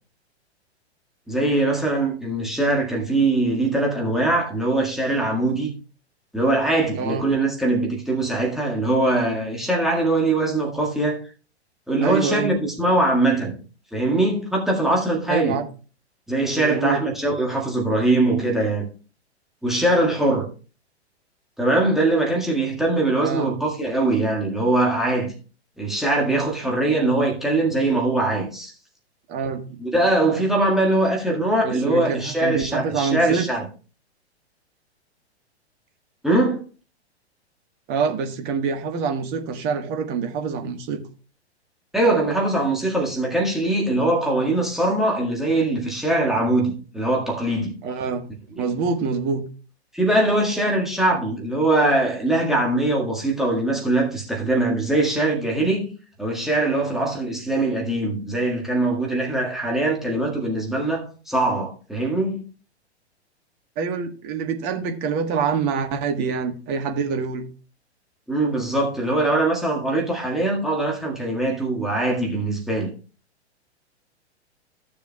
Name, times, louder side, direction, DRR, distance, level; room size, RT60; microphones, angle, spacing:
voice 1, 1.3-5.7 6.3-11.2 11.9-13.6 13.9-15.6 16.3-18.9 19.6-20.4 21.6-25.3 25.8-28.7 29.8-33.6 36.2-36.6 41.9-47.7 48.6-48.7 49.9-55.9 56.2-62.4 68.3-72.9, right 2 dB, ahead, 1.8 m, -22 dB
voice 2, 6.9-7.3 12.0-12.5 15.3-15.7 16.6-17.0 23.2-23.5 29.3-29.8 31.6-33.5 37.9-41.0 47.8-48.3 48.5-49.4 63.8-67.4, right 5 dB, 30° right, 1.5 m, -26 dB
15.0 x 7.0 x 2.3 m
figure-of-eight pair, 105°, 34 cm